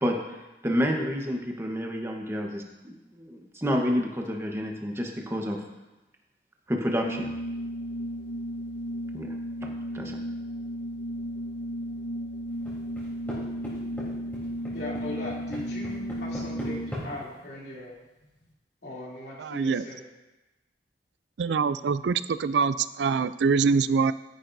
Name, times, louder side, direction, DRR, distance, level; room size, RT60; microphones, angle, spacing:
voice 1, 0.6-5.6 6.7-7.3 9.1-9.3 9.6-10.2, equal, 15° right, 1 dB, 1.2 m, -29 dB
Organ, 6.9-17.2, equal, 85° left, 1.3 m, -34 dB
sound 1, 12.6-13.4 13.6-14.1 14.3-17.0, equal, 10° left, 3.5 m, -37 dB
voice 2, 14.7-17.9 18.8-20.0, left 1 dB, 65° left, -5 dB, 3.1 m, -39 dB
voice 3, 19.4-19.8 21.4-24.1, right 5 dB, 75° right, 15 dB, 0.4 m, -24 dB
13.0 x 10.5 x 2.7 m, 1.1 s
head